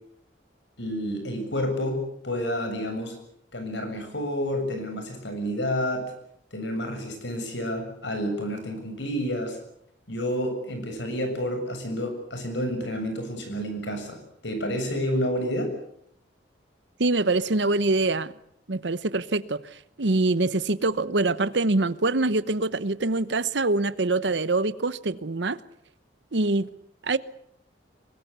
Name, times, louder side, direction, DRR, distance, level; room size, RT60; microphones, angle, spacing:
voice 1, 0.8-3.1 3.5-6.1 6.5-9.6 10.1-15.7, equal, 70° left, 7.3 m, -29 dB
voice 2, 17.0-18.3 18.7-19.6 20.0-25.6 26.3-26.7 27.0-27.2, right 2 dB, 70° right, 1.0 m, -24 dB
24.0 x 20.5 x 8.2 m
head